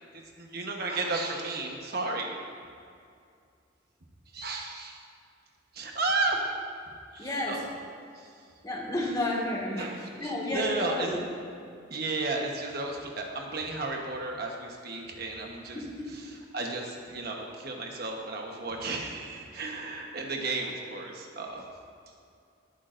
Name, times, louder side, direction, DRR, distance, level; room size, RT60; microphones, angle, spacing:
voice 1, 0.0-2.4 4.3-5.0 5.7-6.4 7.1-7.7 8.1-8.3 9.7-11.1 11.9-21.7, right 3 dB, 55° right, 1 dB, 1.2 m, -33 dB
voice 2, 7.2-7.6 8.6-11.2 15.7-16.1, left 1 dB, 20° left, -4 dB, 1.9 m, -32 dB
19.5 x 8.6 x 2.6 m, 2.3 s
head